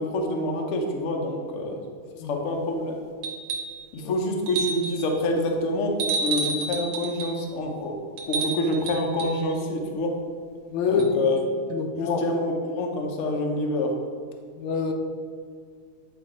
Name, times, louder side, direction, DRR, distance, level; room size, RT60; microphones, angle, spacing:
voice 1, 0.0-1.8 2.3-3.0 3.9-7.9 8.3-10.1 10.9-11.4 12.0-13.9, left 1 dB, 60° left, 1 dB, 0.8 m, -27 dB
sound 1, 3.2-3.8 4.5-5.1 6.0-7.4 8.2-9.4 11.0-11.1, right 4 dB, 80° right, 1.7 m, -30 dB
voice 2, 10.7-11.1 11.7-12.2 14.6-14.9, left 5 dB, 80° left, 4 dB, 1.6 m, -26 dB
9.2 x 3.1 x 4.7 m, 2.1 s
omnidirectional pair, 2.3 m